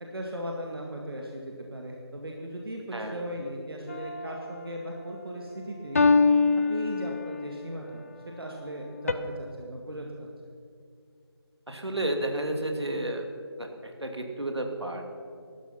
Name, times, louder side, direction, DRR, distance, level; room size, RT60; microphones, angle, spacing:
voice 1, 0.1-6.0 6.7-10.3, equal, 60° right, 0 dB, 1.8 m, -38 dB
sound 1, 3.9-4.6 6.0-7.6 9.1-9.2, left 4 dB, 35° left, 0.6 m, -24 dB
voice 2, 11.7-13.3 13.6-15.1, right 1 dB, 80° right, 4 dB, 2.5 m, -31 dB
15.5 x 12.5 x 5.7 m, 2.3 s
figure-of-eight pair, 160°, 14 cm